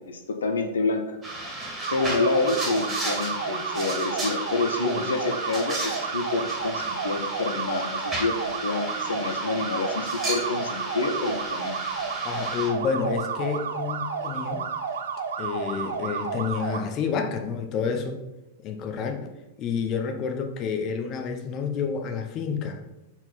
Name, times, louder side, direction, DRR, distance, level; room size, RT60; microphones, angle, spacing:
voice 1, 0.1-1.2 1.9-11.8, left 3 dB, 80° left, 5 dB, 0.7 m, -28 dB
sound 1, 1.2-12.7, right 1 dB, 20° right, 2.1 m, -34 dB
sound 2, 1.8-16.8, right 6 dB, 70° right, 0.6 m, -31 dB
voice 2, 12.2-14.7 15.4-18.2 18.6-19.2 19.6-22.8, left 6 dB, 40° left, 5 dB, 0.9 m, -29 dB
4.4 x 4.0 x 5.7 m, 0.97 s
hypercardioid pair, 105°, 0 cm